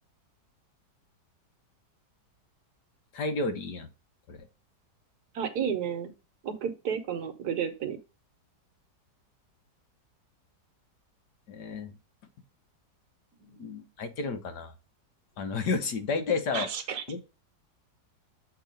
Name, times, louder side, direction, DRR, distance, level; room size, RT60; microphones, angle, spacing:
voice 1, 3.1-3.9 4.3-4.4 11.5-11.9 13.6-14.7 15.4-16.7 17.1-17.2, left 4 dB, 70° left, 7 dB, 1.6 m, -31 dB
voice 2, 5.3-6.1 6.4-8.0 13.4-13.8 16.5-17.0, right 8 dB, 65° right, 7 dB, 1.4 m, -32 dB
7.5 x 3.0 x 5.1 m, 0.28 s
omnidirectional pair, 1.9 m